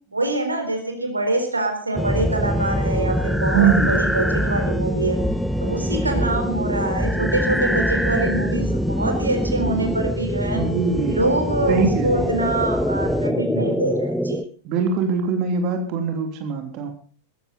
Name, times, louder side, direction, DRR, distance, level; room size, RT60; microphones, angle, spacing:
voice 1, 0.1-5.2 5.6-10.6 11.1-14.4, right 2 dB, 80° right, 6 dB, 4.2 m, -25 dB
sound 1, 2.0-14.4, equal, ahead, 1.1 m, -23 dB
voice 2, 3.5-3.9 10.6-11.4 11.7-12.3 14.6-16.9, right 6 dB, 40° right, 5 dB, 3.2 m, -22 dB
17.5 x 14.5 x 4.0 m, 0.43 s
figure-of-eight pair, 90°, 0 cm